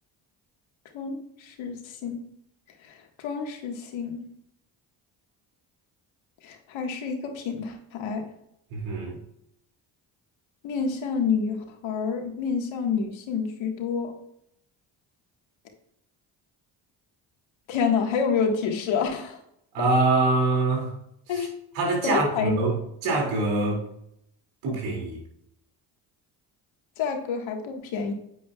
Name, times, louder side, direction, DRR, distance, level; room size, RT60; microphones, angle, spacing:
voice 1, 0.9-2.2 2.8-4.2 6.4-8.2 10.6-11.6 11.8-14.2 17.7-19.4 21.3-21.5 22.0-22.6 27.0-28.1, left 6 dB, 75° left, 3 dB, 1.7 m, -28 dB
voice 2, 8.7-9.2 19.7-20.9 21.3-21.5 21.7-23.8 24.6-25.2, right 3 dB, 85° right, 0 dB, 2.7 m, -24 dB
9.1 x 8.3 x 2.4 m, 0.75 s
supercardioid pair, 55°, 47 cm